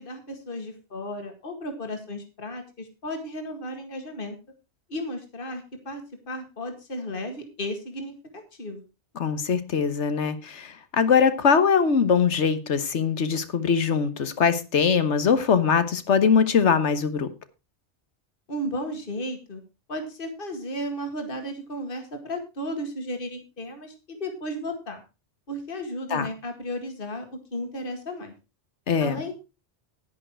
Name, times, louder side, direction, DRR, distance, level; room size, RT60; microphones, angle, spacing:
voice 1, 0.0-4.4 4.9-8.8 18.5-19.6 19.9-25.0 25.5-27.3 27.5-28.3 29.0-29.3, equal, 50° left, 5 dB, 2.2 m, -34 dB
voice 2, 9.2-17.3 26.1-26.3 28.9-29.2, left 6 dB, 85° left, 12 dB, 1.5 m, -22 dB
10.5 x 10.5 x 4.4 m, 0.29 s
omnidirectional pair, 1.2 m